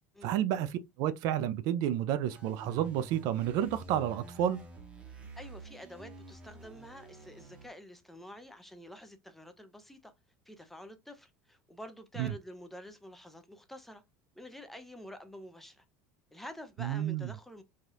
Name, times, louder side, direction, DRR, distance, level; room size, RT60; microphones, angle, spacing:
voice 1, 0.2-4.6 12.2-12.3 16.8-17.3, right 11 dB, 55° right, 0.4 m, -30 dB
sound 1, 2.3-7.7, right 3 dB, 15° right, 0.8 m, -49 dB
voice 2, 5.1-10.1 10.5-14.0 14.4-15.8 16.3-17.6, left 1 dB, 5° left, 0.5 m, -48 dB
3.3 x 2.3 x 2.6 m
cardioid pair, 145°, 8 cm